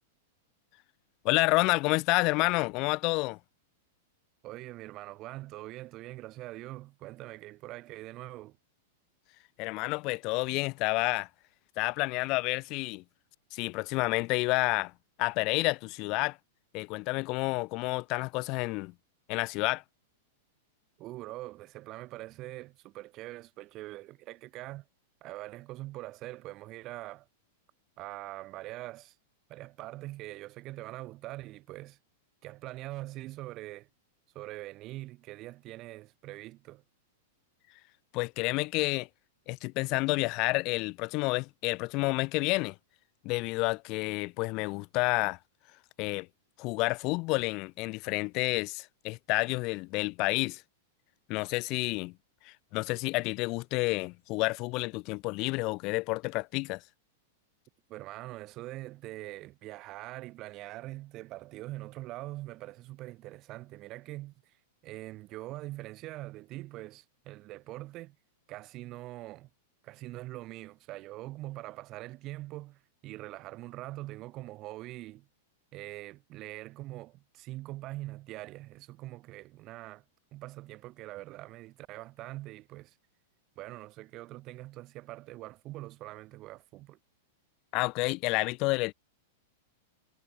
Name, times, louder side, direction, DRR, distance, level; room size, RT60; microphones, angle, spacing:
voice 1, 1.2-3.4 9.6-11.3 11.8-13.0 13.5-14.9 15.2-16.4 16.7-18.9 19.3-19.8 38.1-39.1 39.5-42.8 43.2-45.4 46.0-46.3 46.6-50.6 51.3-52.1 52.4-56.8 87.7-88.9, left 25 dB, 45° left, 2.3 m, -29 dB
voice 2, 4.4-8.6 21.0-24.9 25.2-27.3 28.0-29.1 29.5-32.0 32.4-33.9 34.3-36.8 57.9-64.6 64.8-68.2 68.5-69.5 69.8-75.3 75.7-80.0 80.3-83.0 83.5-87.0, right 17 dB, 40° right, 3.3 m, -43 dB
figure-of-eight pair, 100°, 0 cm